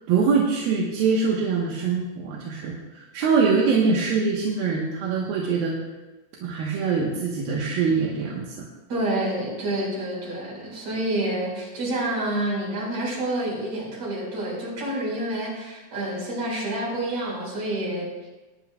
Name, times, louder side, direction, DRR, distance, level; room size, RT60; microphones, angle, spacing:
voice 1, 0.1-5.8 6.4-8.7, right 5 dB, 80° right, -3 dB, 3.0 m, -23 dB
voice 2, 8.9-18.0, right 1 dB, 50° right, -4 dB, 6.1 m, -28 dB
21.0 x 10.5 x 2.3 m, 1.1 s
omnidirectional pair, 4.2 m